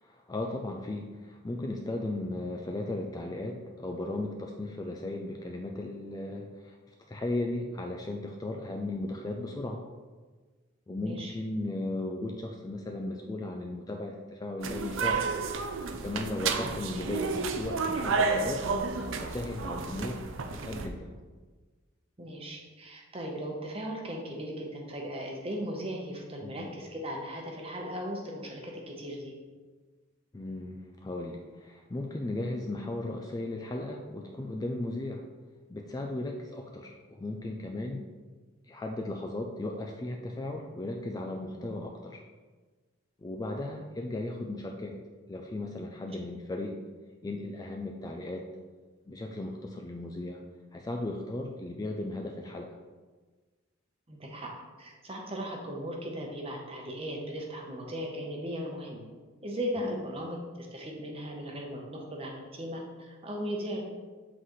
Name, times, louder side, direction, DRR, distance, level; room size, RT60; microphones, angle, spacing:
voice 1, 0.0-9.9 10.9-15.3 16.0-18.6 19.2-20.2 20.5-21.1 26.4-26.7 30.3-35.3 35.7-38.1 38.7-42.2 43.2-45.0 45.3-46.8 47.2-48.5 49.1-50.4 50.7-52.8 59.8-60.0, left 2 dB, 20° left, 2 dB, 0.3 m, -36 dB
voice 2, 11.0-11.3 22.2-29.3 41.6-41.7 54.1-54.5 54.8-59.0 59.4-63.8, equal, 30° right, 0 dB, 0.9 m, -37 dB
sound 1, 14.6-20.9, right 4 dB, 70° right, 0.5 m, -31 dB
7.7 x 4.0 x 3.1 m, 1.4 s
head